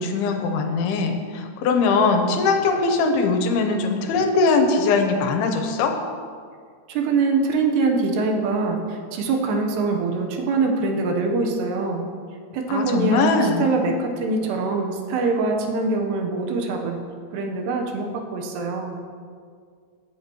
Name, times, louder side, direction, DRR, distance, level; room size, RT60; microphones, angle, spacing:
voice 1, 0.0-5.9 12.7-13.7, left 4 dB, 75° left, 4 dB, 2.7 m, -21 dB
voice 2, 6.9-12.0 12.5-17.0 17.3-19.0, right 3 dB, 80° right, 2 dB, 3.1 m, -23 dB
16.5 x 8.5 x 3.0 m, 2.1 s
omnidirectional pair, 4.8 m